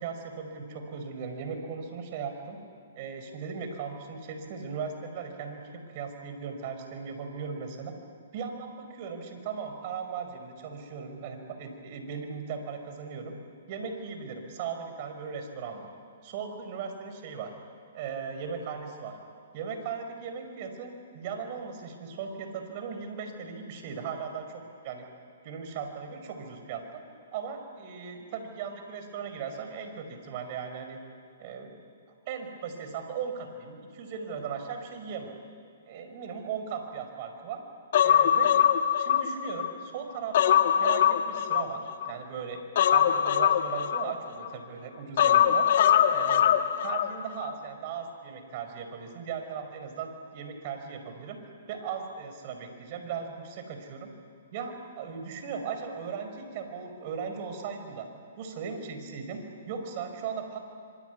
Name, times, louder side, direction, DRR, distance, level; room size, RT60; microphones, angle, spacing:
voice 1, 0.0-2.6 3.0-5.6 5.9-7.9 8.3-13.3 13.7-15.9 16.2-17.5 17.9-19.2 19.5-25.1 25.4-27.0 27.3-31.0 31.4-31.8 32.3-35.3 35.9-37.6 38.0-38.5 39.0-45.7 46.1-46.5 46.8-51.4 51.7-54.1 54.5-58.1 58.4-60.6, right 6 dB, 45° right, 6 dB, 5.3 m, -37 dB
Human voice, 37.9-39.7 40.1-42.1 42.8-44.5 45.2-47.1 47.4-47.5, left 10 dB, 60° left, 1.8 m, -23 dB
26.0 x 24.0 x 9.5 m, 2.3 s
hypercardioid pair, 140°, 0 cm